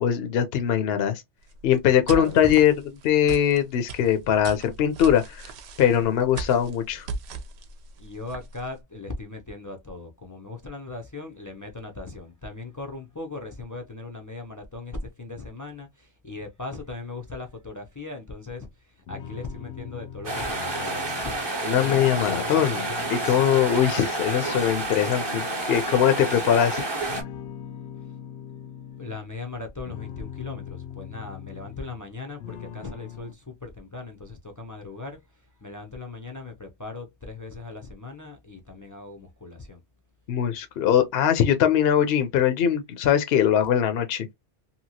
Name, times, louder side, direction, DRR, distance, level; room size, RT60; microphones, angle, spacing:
voice 1, 0.0-1.2 1.6-2.7 3.0-5.5 5.8-7.1 21.6-26.9 40.3-44.3, left 9 dB, 65° left, 0.8 m, -21 dB
sound 1, 1.4-8.8, right 4 dB, 70° right, 0.9 m, -38 dB
voice 2, 2.1-2.5 8.0-21.4 29.0-35.2 35.6-39.8, left 3 dB, 30° left, 0.3 m, -38 dB
sound 2, 19.1-24.0 24.4-26.6 27.1-29.2 29.7-32.1 32.4-33.3, left 9 dB, 90° left, 0.9 m, -41 dB
sound 3, 20.2-27.2, right 2 dB, 25° right, 0.7 m, -29 dB
2.8 x 2.7 x 2.7 m
omnidirectional pair, 1.2 m